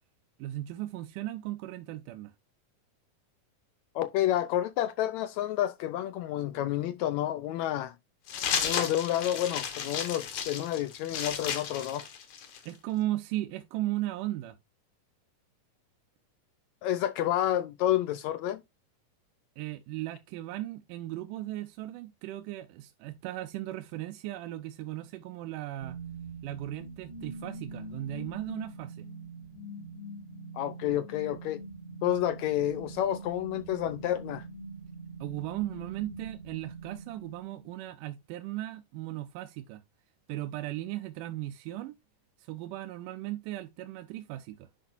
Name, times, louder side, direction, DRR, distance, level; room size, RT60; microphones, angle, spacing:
voice 1, 0.4-2.3 12.7-14.6 19.6-26.0 26.4-29.1 35.2-39.8 40.3-42.0 42.4-44.7, right 15 dB, 80° right, 2.2 m, -37 dB
voice 2, 3.9-7.9 8.6-12.1 16.8-18.6 30.5-31.6 32.0-34.4, left 12 dB, 85° left, 1.6 m, -29 dB
sound 1, 8.3-12.7, left 7 dB, 65° left, 2.9 m, -33 dB
sound 2, 25.8-37.8, right 2 dB, 50° right, 1.3 m, -44 dB
10.0 x 5.9 x 2.6 m
omnidirectional pair, 3.7 m